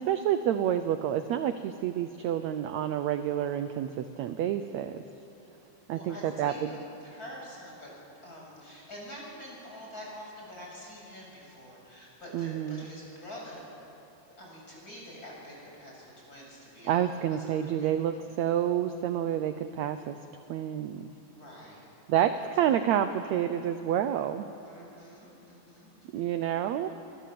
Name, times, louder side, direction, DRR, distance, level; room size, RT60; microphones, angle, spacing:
voice 1, 0.0-5.0 5.9-6.7 12.3-12.9 16.9-20.2 20.5-21.1 22.1-24.5 26.1-26.9, right 10 dB, 75° right, 9 dB, 1.7 m, -29 dB
voice 2, 5.9-7.9 8.2-13.7 14.4-17.1 17.5-18.4 21.2-21.8 24.6-26.3, equal, 25° left, -3 dB, 8.2 m, -46 dB
29.5 x 23.0 x 7.8 m, 2.9 s
omnidirectional pair, 4.0 m